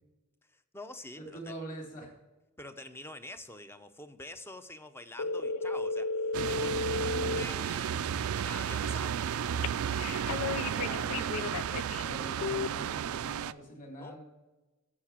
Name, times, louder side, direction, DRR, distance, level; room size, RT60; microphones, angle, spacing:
voice 1, 0.5-1.5 2.6-9.6 13.8-14.2, left 1 dB, 10° left, 10 dB, 0.6 m, -46 dB
voice 2, 1.2-2.1 10.8-11.1 12.0-14.2, right 1 dB, 40° left, 1 dB, 3.2 m, -44 dB
sound 1, 5.2-7.4 9.6-12.0 12.4-12.7, left 3 dB, 90° left, 0.5 m, -33 dB
sound 2, 6.3-13.5, right 8 dB, 75° right, 0.4 m, -33 dB
9.7 x 6.7 x 7.2 m, 1.1 s
head